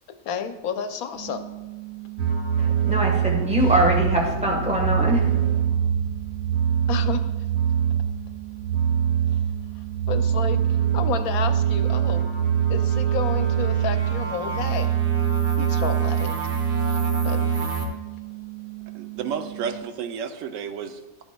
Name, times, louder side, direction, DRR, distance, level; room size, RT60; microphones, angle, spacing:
voice 1, 0.2-1.5 6.9-7.3 9.3-9.4 9.7-15.0 15.6-16.3 16.8-17.4, left 7 dB, 85° left, 8 dB, 1.1 m, -31 dB
sound 1, 1.1-19.8, right 21 dB, 65° left, 0.9 m, -39 dB
sound 2, 2.2-4.4 4.7-8.2 8.5-17.9, right 8 dB, 50° right, 1.2 m, -23 dB
voice 2, 2.6-5.6, equal, 5° right, -1 dB, 1.1 m, -23 dB
Keyboard (musical), 3.6-13.9, right 2 dB, 85° right, 2.8 m, -38 dB
voice 3, 18.9-21.2, right 7 dB, 70° right, 8 dB, 0.9 m, -32 dB
12.0 x 7.1 x 2.2 m, 1.1 s
omnidirectional pair, 1.5 m